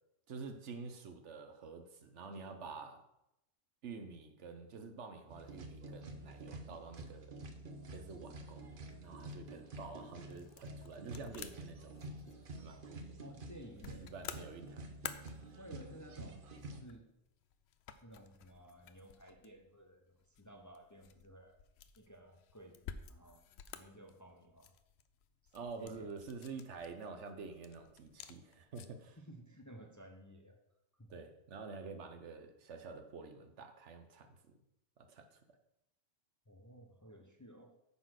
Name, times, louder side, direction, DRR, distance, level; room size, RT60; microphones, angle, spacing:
voice 1, 0.3-3.0 3.8-7.3 7.9-12.0 12.6-13.2 14.0-14.9 25.5-29.2 31.1-34.5 35.0-35.4, right 4 dB, 70° right, 7 dB, 1.2 m, -48 dB
sound 1, 5.3-16.8, right 2 dB, 50° right, 1.0 m, -49 dB
sound 2, 10.2-29.1, left 8 dB, 70° left, 0.8 m, -54 dB
voice 2, 13.2-14.1 15.6-17.1 18.0-21.6 22.0-23.4 23.7-24.7 25.4-25.5 25.8-26.1 29.2-30.6 31.0-31.1 36.5-37.7, equal, 20° left, 2 dB, 0.7 m, -55 dB
9.2 x 4.1 x 6.3 m, 0.85 s
omnidirectional pair, 1.2 m